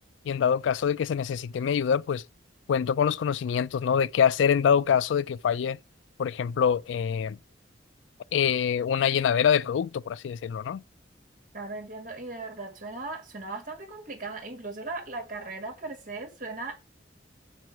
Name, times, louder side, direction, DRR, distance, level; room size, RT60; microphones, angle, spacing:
voice 1, 0.3-2.2 2.7-5.8 6.2-7.4 8.3-10.8, left 7 dB, 80° left, 0.3 m, -25 dB
voice 2, 11.5-16.7, right 3 dB, 45° right, 2.0 m, -38 dB
7.8 x 4.6 x 5.9 m
head